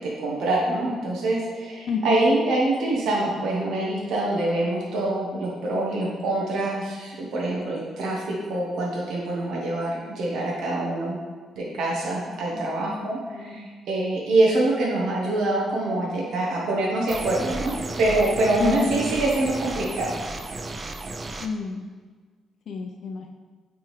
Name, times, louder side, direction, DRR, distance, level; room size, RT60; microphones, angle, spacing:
voice 1, 0.0-11.2 11.5-17.7 18.0-20.1, right 2 dB, 75° right, -4 dB, 1.2 m, -25 dB
voice 2, 1.9-2.2 12.5-13.7 18.6-18.9 21.4-21.9 22.7-23.3, left 5 dB, 65° left, 2 dB, 0.5 m, -29 dB
sound 1, 17.1-21.5, right 2 dB, 30° right, 0.4 m, -33 dB
8.6 x 3.5 x 3.2 m, 1.5 s
cardioid pair, 90°, 0 cm